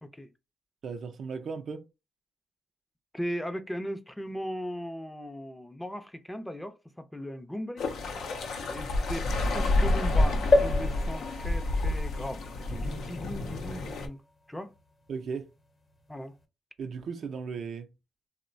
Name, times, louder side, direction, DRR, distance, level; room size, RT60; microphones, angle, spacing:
voice 1, 0.0-0.3 3.1-7.9 8.7-14.2 14.5-14.7 16.1-16.3, equal, 10° left, 0.5 m, -38 dB
voice 2, 0.8-1.8 15.1-15.5 16.8-17.9, right 5 dB, 70° right, 0.4 m, -36 dB
sound 1, 7.8-14.1, left 2 dB, 80° left, 0.5 m, -29 dB
sound 2, 10.5-14.2 14.8-14.9 15.1-15.2, left 2 dB, 45° left, 0.9 m, -30 dB
2.9 x 2.1 x 2.5 m
supercardioid pair, 60°, 0 cm